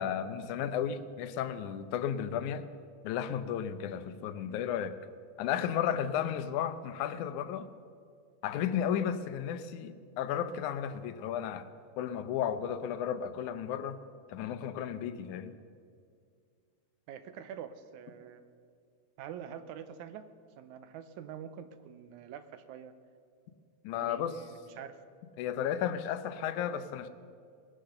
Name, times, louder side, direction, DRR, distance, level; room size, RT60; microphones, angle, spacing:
voice 1, 0.0-2.6 3.0-5.0 5.4-7.7 8.4-11.7 12.0-14.0 14.3-15.5 23.8-24.4 25.4-27.1, left 9 dB, 85° left, 2.1 m, -33 dB
voice 2, 17.1-18.4 19.2-20.2 20.6-22.9 24.0-25.0, right 9 dB, 85° right, 2.1 m, -45 dB
19.5 x 10.5 x 6.8 m
omnidirectional pair, 3.4 m